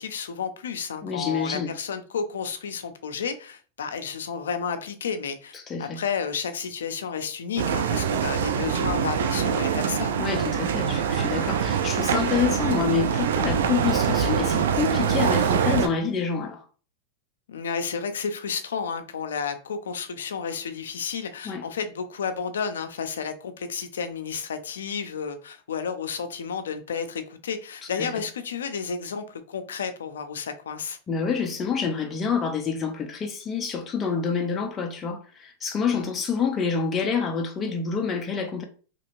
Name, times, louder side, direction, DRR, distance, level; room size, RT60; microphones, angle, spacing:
voice 1, 0.0-10.2 17.5-31.0 35.9-36.1, left 6 dB, 80° left, 0.4 m, -32 dB
voice 2, 1.0-1.7 5.5-6.0 10.2-16.6 21.4-21.6 28.0-28.1 31.1-38.6, left 6 dB, 25° left, 0.5 m, -27 dB
sound 1, 7.6-15.9, right 7 dB, 75° right, 0.4 m, -24 dB
2.9 x 2.8 x 2.6 m
hypercardioid pair, 105°, 0 cm